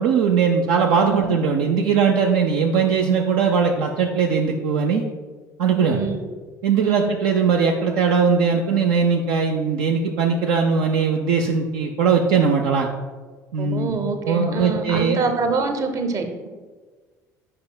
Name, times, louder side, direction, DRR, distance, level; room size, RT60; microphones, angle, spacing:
voice 1, 0.0-5.0 5.6-6.0 6.6-12.9 13.5-13.9 14.3-15.3, right 5 dB, 60° right, 1 dB, 0.5 m, -20 dB
voice 2, 5.8-6.3 6.8-7.1 13.6-16.5, right 4 dB, 35° right, 6 dB, 0.8 m, -25 dB
8.6 x 5.3 x 2.2 m, 1.4 s
figure-of-eight pair, 55°, 9 cm